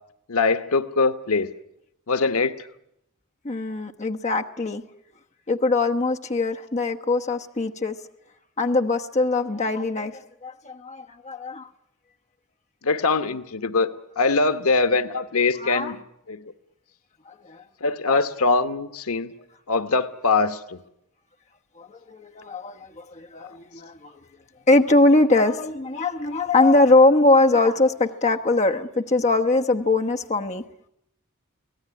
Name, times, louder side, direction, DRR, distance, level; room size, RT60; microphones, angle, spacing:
voice 1, 0.3-1.5 2.1-2.5 12.8-13.9 14.2-16.0 16.3-16.4 17.8-19.3 19.7-20.8, left 3 dB, 80° left, 11 dB, 1.2 m, -22 dB
voice 2, 3.4-4.8 5.5-8.0 8.6-11.7 15.5-16.0 17.3-17.6 18.0-18.2 21.8-24.2 24.7-30.6, left 2 dB, 35° left, 4 dB, 1.1 m, -22 dB
24.5 x 17.5 x 9.6 m, 0.79 s
head